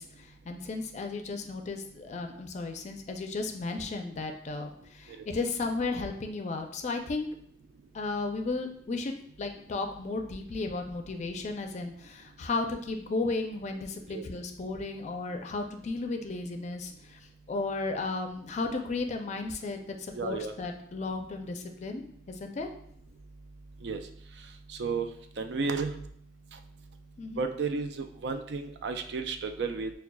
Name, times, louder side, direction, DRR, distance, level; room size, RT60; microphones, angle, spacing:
voice 1, 0.0-7.3 7.9-9.1 9.4-17.2 17.5-22.7 27.2-27.5, left 3 dB, 40° left, 5 dB, 0.4 m, -34 dB
voice 2, 20.1-20.5 23.8-24.0 24.8-25.1 25.4-25.9 27.4-29.9, right 4 dB, 70° right, 7 dB, 0.4 m, -32 dB
5.9 x 2.3 x 2.2 m, 0.66 s
head